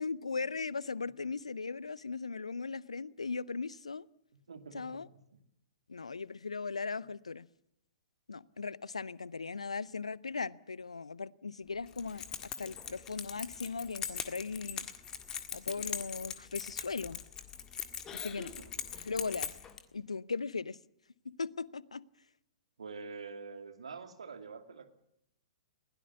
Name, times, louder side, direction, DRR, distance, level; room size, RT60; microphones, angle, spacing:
voice 1, 0.0-4.1 4.7-5.1 5.9-7.5 8.3-12.2 12.6-14.9 15.5-17.2 18.1-18.5 19.0-19.5 19.9-20.8 21.2-22.0, left 4 dB, 70° left, 0.7 m, -38 dB
voice 2, 4.5-5.0 18.5-18.9 22.8-24.9, right 4 dB, 65° right, 2.4 m, -46 dB
Keys jangling, 11.9-19.8, left 7 dB, 15° left, 1.7 m, -41 dB
21.0 x 16.5 x 8.4 m
figure-of-eight pair, 115°, 3 cm